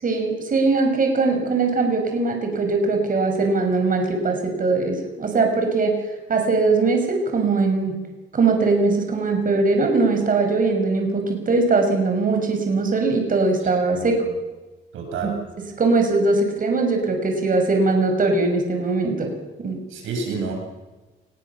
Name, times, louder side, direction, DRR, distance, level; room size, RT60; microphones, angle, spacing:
voice 1, 0.0-6.0 6.3-8.0 8.3-14.1 15.2-15.3 15.8-19.3 19.6-19.8, right 3 dB, 45° right, 4 dB, 6.0 m, -21 dB
voice 2, 14.9-15.4 19.9-20.5, right 4 dB, 85° right, 2 dB, 8.0 m, -28 dB
28.0 x 22.0 x 7.3 m, 1.1 s
cardioid pair, 90°, 20 cm